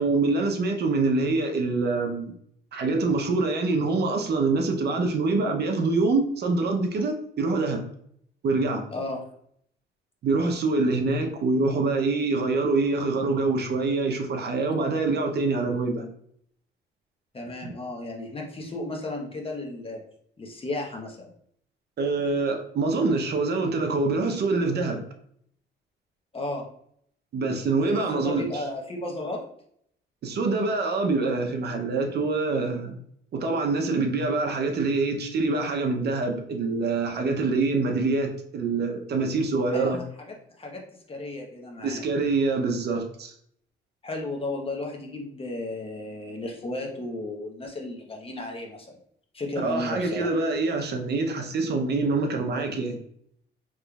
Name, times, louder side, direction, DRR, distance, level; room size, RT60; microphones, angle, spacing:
voice 1, 0.0-2.3 2.7-7.8 8.4-8.8 10.2-16.1 22.0-25.0 27.3-28.5 30.2-33.0 33.3-40.0 41.8-43.3 49.6-53.0, right 3 dB, 55° right, 3 dB, 0.6 m, -25 dB
voice 2, 8.9-9.2 17.3-20.0 20.4-21.3 26.3-26.6 27.8-29.4 39.7-40.8 41.1-42.0 44.0-48.9 49.3-50.3, left 2 dB, 30° left, 0 dB, 0.9 m, -34 dB
3.7 x 3.1 x 2.3 m, 0.67 s
cardioid pair, 90°, 20 cm